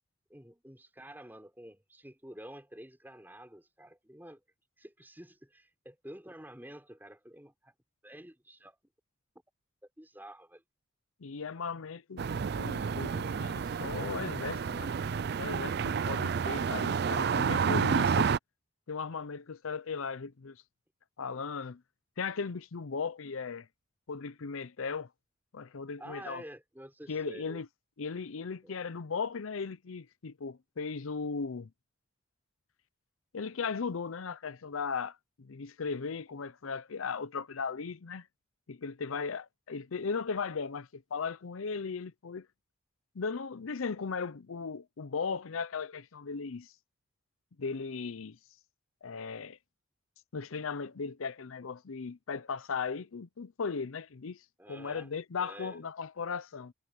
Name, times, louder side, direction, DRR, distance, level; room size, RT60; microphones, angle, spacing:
voice 1, 0.3-4.4 4.8-7.7 8.0-8.8 10.0-10.6 26.0-27.6 28.6-28.8 54.6-55.1 55.4-55.8, right 1 dB, 10° right, 4.6 m, -49 dB
voice 2, 11.2-14.9 15.4-18.3 18.9-20.6 21.2-21.8 22.2-23.7 24.1-25.1 25.5-26.4 27.1-27.7 28.0-31.7 33.3-38.3 38.7-42.5 43.2-46.7 47.6-48.4 49.0-49.6 50.3-54.4 54.7-56.7, left 5 dB, 80° left, 0.6 m, -37 dB
sound 1, 12.2-18.4, right 6 dB, 50° right, 0.4 m, -30 dB
head